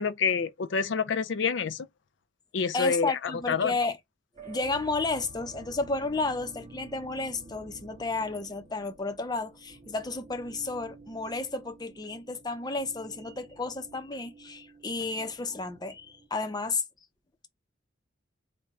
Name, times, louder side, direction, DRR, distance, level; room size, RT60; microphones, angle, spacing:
voice 1, 0.0-1.9 2.5-3.8, left 6 dB, 75° left, 0.5 m, -28 dB
voice 2, 2.7-4.0 4.5-16.8, left 3 dB, 20° left, 0.6 m, -32 dB
sound 1, 4.3-16.3, right 2 dB, 30° right, 1.1 m, -51 dB
3.7 x 2.2 x 4.1 m
head